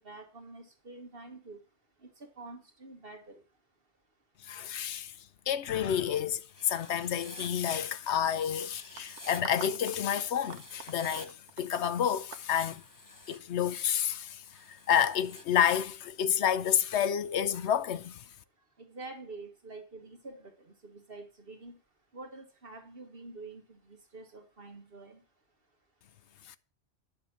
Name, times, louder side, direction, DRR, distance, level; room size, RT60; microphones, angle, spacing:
voice 1, 0.0-1.6 2.0-3.4 18.8-21.8 22.1-25.2, right 3 dB, 50° right, 1.8 m, -47 dB
voice 2, 4.4-5.1 5.5-12.8 13.3-18.2 26.5-26.6, left 9 dB, 70° left, 1.0 m, -29 dB
Writing, 6.5-7.5 8.4-9.4 10.4-11.3 12.4-13.4 14.4-15.4, left 2 dB, 15° left, 1.1 m, -49 dB
sound 1, 9.0-13.4, right 6 dB, 70° right, 1.2 m, -46 dB
10.0 x 6.0 x 6.7 m
omnidirectional pair, 1.2 m